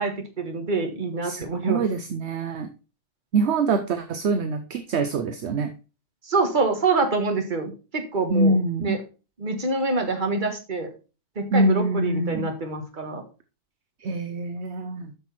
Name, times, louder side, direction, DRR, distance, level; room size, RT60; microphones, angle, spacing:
voice 1, 0.0-1.8 6.3-9.0 9.4-10.9 11.3-13.2, right 3 dB, 40° right, 5 dB, 1.7 m, -26 dB
voice 2, 1.2-2.7 3.3-5.7 8.3-9.0 11.5-12.5 14.0-15.1, right 2 dB, 65° right, 8 dB, 1.0 m, -24 dB
8.3 x 6.3 x 4.3 m, 0.32 s
omnidirectional pair, 1.3 m